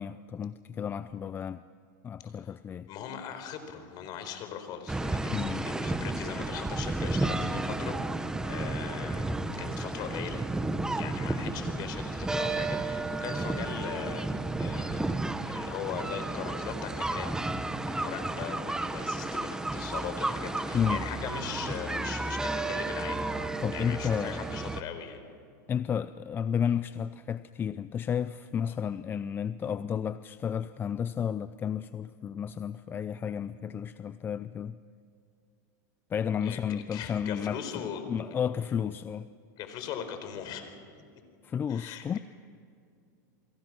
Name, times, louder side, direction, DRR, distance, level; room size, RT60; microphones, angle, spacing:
voice 1, 0.0-1.6 2.0-2.9 5.3-5.7 20.7-21.0 23.6-24.4 25.7-34.8 36.1-39.3 41.4-42.2, left 8 dB, 20° left, 14 dB, 0.5 m, -32 dB
voice 2, 2.2-2.6 2.9-10.4 10.9-14.3 14.6-17.3 17.9-23.2 23.7-25.2 28.7-28.8 36.4-38.0 39.6-40.7 41.7-42.2, left 8 dB, 45° left, 8 dB, 4.2 m, -40 dB
sound 1, 4.9-24.8, right 2 dB, 5° right, 1.1 m, -32 dB
29.0 x 23.5 x 6.1 m, 2.3 s
supercardioid pair, 130°, 10 cm